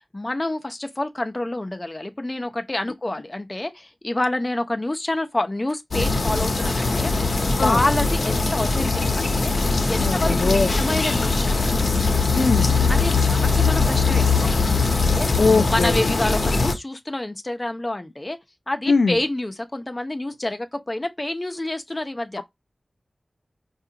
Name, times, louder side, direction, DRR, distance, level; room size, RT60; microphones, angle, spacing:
voice 1, 0.1-7.1 7.5-11.7 12.9-14.6 15.0-18.4 18.7-22.4, left 1 dB, 25° left, 0.7 m, -28 dB
sound 1, 5.9-16.7, left 3 dB, 70° left, 0.7 m, -21 dB
voice 2, 10.0-10.7 12.4-12.7 15.4-15.9 18.9-19.1, left 4 dB, 90° left, 0.4 m, -20 dB
4.8 x 2.4 x 2.8 m
wide cardioid pair, 85°, 0 cm